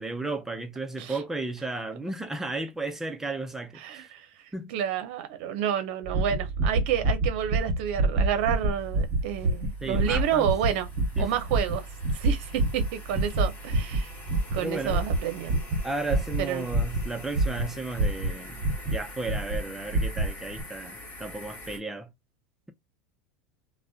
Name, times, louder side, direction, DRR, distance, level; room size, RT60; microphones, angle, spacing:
voice 1, 0.0-4.1 4.5-4.7 9.8-10.5 11.2-11.3 14.6-15.1 15.8-22.1, right 2 dB, 5° right, 0.5 m, -34 dB
voice 2, 3.8-4.3 4.7-10.9 11.2-11.9 12.1-14.1 14.5-15.6 16.4-16.7, right 9 dB, 70° right, 0.6 m, -29 dB
sound 1, 6.0-19.0 19.3-19.6 19.9-20.3 20.6-20.7, right 2 dB, 35° right, 1.1 m, -27 dB
sound 2, 7.9-21.8, left 2 dB, 25° left, 1.1 m, -46 dB
2.4 x 2.1 x 2.3 m
supercardioid pair, 130°, 6 cm